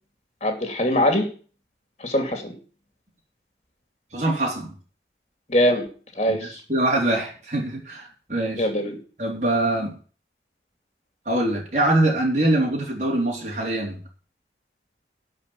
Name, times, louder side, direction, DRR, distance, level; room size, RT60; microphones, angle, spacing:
voice 1, 0.4-1.3 2.0-2.5 5.5-5.9 6.2-6.6 8.6-9.0, equal, 35° left, 4 dB, 2.8 m, -22 dB
voice 2, 4.1-4.7 6.3-6.4 6.7-8.7 9.2-9.9 11.3-14.0, right 1 dB, 40° right, -1 dB, 3.9 m, -23 dB
12.0 x 5.5 x 8.4 m, 0.39 s
head